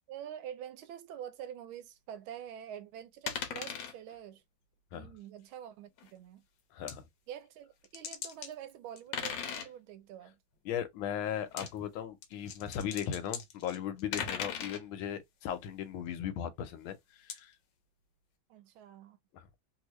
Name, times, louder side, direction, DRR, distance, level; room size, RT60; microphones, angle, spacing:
voice 1, 0.1-4.4 4.9-6.4 7.3-10.4 18.5-19.2, right 10 dB, 90° right, 1.5 m, -46 dB
sound 1, 3.3-3.9 6.0-6.1 6.9-7.0 7.8-8.5 9.0-9.7 11.4-11.7 12.2-14.8 17.3-17.4, left 7 dB, 70° left, 1.4 m, -38 dB
voice 2, 6.7-7.1 10.6-17.5 19.3-19.5, left 9 dB, 90° left, 1.6 m, -37 dB
3.4 x 2.8 x 3.0 m
omnidirectional pair, 2.2 m